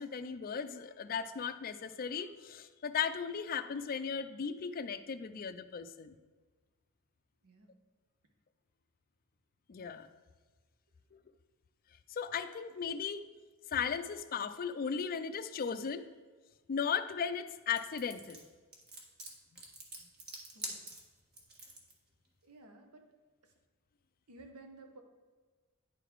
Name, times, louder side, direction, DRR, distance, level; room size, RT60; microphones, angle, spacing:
voice 1, 0.0-6.1 9.7-10.1 11.1-11.2 12.1-13.3 13.7-16.1 16.7-18.4, left 6 dB, 40° left, 11 dB, 0.4 m, -36 dB
sound 1, 17.7-21.9, right 2 dB, 45° right, 1.4 m, -45 dB
voice 2, 22.4-23.1 23.4-23.5 24.3-25.0, right 2 dB, 85° right, 4 dB, 1.0 m, -55 dB
9.8 x 4.0 x 4.5 m, 1.4 s
head